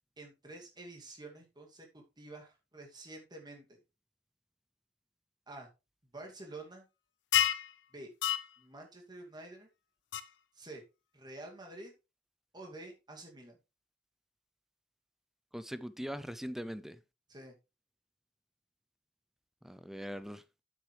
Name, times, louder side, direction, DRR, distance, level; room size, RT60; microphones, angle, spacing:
voice 1, 0.2-3.8 5.5-5.7 6.1-6.9 7.9-8.1 8.6-9.7 10.5-10.8 11.1-11.9 12.5-13.6 17.3-17.5, right 2 dB, 25° right, 2.5 m, -49 dB
sound 1, 7.3-7.7 8.2-8.5 10.1-10.2, left 10 dB, 90° left, 0.6 m, -28 dB
voice 2, 15.5-17.0 19.6-20.4, equal, ahead, 0.5 m, -41 dB
9.0 x 7.9 x 3.3 m
head